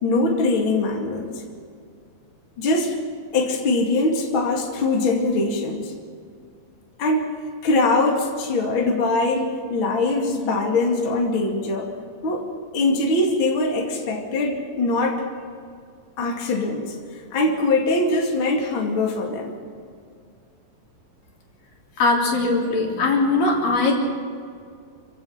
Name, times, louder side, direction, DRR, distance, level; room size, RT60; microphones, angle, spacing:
voice 1, 0.0-1.4 2.6-2.9 3.3-5.9 7.0-7.3 7.6-11.9 12.2-15.3 16.2-17.0 17.3-19.6, left 2 dB, 40° left, 0 dB, 2.9 m, -22 dB
voice 2, 22.0-24.0, left 3 dB, 75° left, -2 dB, 5.2 m, -20 dB
29.0 x 16.0 x 5.9 m, 2.2 s
omnidirectional pair, 4.0 m